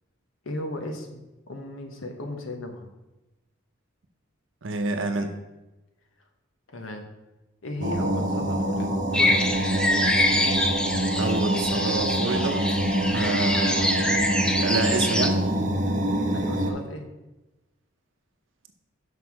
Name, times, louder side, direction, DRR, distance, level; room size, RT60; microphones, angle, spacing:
voice 1, 0.4-2.9 6.7-7.0 7.6-9.5 16.3-17.1, left 1 dB, 85° left, 4 dB, 1.1 m, -35 dB
voice 2, 4.6-5.3 11.2-12.6 13.1-14.3 14.6-15.4, right 3 dB, 70° right, 5 dB, 0.7 m, -28 dB
sound 1, 7.8-16.7, right 1 dB, 40° right, 0.8 m, -25 dB
sound 2, 9.1-15.3, left 1 dB, 5° left, 0.4 m, -25 dB
6.1 x 5.6 x 4.7 m, 1.0 s
head